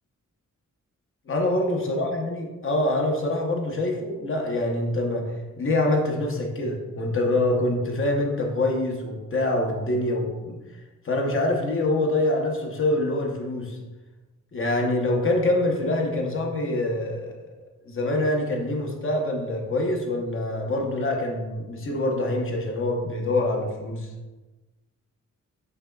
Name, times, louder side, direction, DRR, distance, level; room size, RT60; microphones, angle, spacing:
voice 1, 1.3-2.4 2.6-5.2 5.6-10.6 11.0-13.8 14.5-17.4 17.9-24.1, left 1 dB, 45° left, 1 dB, 0.7 m, -25 dB
5.6 x 3.8 x 2.3 m, 1.2 s
wide cardioid pair, 155°, 31 cm